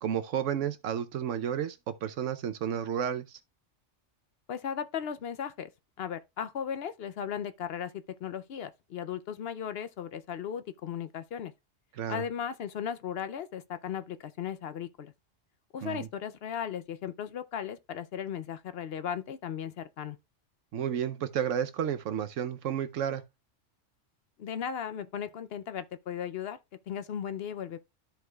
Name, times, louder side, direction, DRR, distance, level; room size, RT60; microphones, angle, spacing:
voice 1, 0.0-3.4 11.9-12.2 15.8-16.1 20.7-23.2, right 9 dB, 85° right, 1.1 m, -32 dB
voice 2, 4.5-5.7 6.0-11.5 12.1-15.1 15.7-20.2 24.4-26.6 26.9-27.8, left 8 dB, 60° left, 0.7 m, -36 dB
13.5 x 4.7 x 2.3 m
omnidirectional pair, 1.3 m